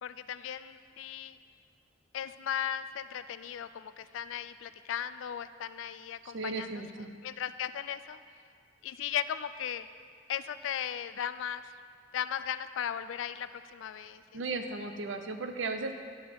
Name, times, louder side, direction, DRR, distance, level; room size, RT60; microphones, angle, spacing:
voice 1, 0.0-1.4 2.1-6.7 7.2-8.2 8.8-9.9 10.3-11.6 12.1-14.2, left 9 dB, 80° left, 13 dB, 0.3 m, -36 dB
voice 2, 6.2-7.1 14.3-15.9, right 3 dB, 75° right, 6 dB, 0.6 m, -36 dB
10.5 x 3.9 x 6.7 m, 2.2 s
head